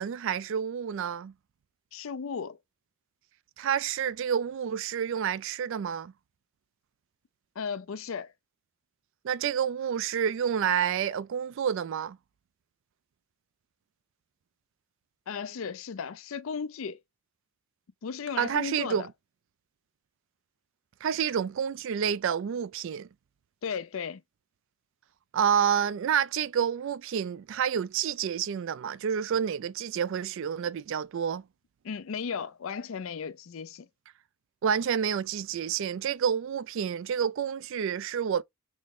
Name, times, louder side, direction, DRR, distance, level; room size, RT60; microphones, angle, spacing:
voice 1, 0.0-1.3 3.6-6.1 9.2-12.2 18.4-19.0 21.0-23.1 25.3-31.4 34.6-38.4, right 8 dB, 60° right, 0.3 m, -29 dB
voice 2, 1.9-2.6 7.6-8.3 15.3-17.0 18.0-19.1 23.6-24.2 31.8-33.9, left 6 dB, 65° left, 0.4 m, -35 dB
6.1 x 2.1 x 3.6 m
head